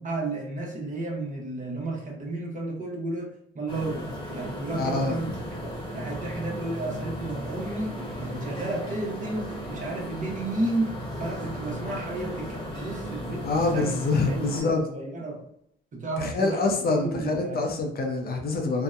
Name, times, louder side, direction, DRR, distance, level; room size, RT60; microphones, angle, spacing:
voice 1, 0.0-3.3 3.5-10.9 11.2-14.0 14.3-15.4 15.9-17.6, right 2 dB, 40° right, -1 dB, 0.8 m, -32 dB
sound 1, 3.7-14.6, equal, 25° left, 0.9 m, -36 dB
voice 2, 4.7-5.2 13.4-14.8 16.2-18.8, left 3 dB, 50° left, 2 dB, 0.6 m, -26 dB
2.7 x 2.1 x 2.3 m, 0.69 s
cardioid pair, 90°, 20 cm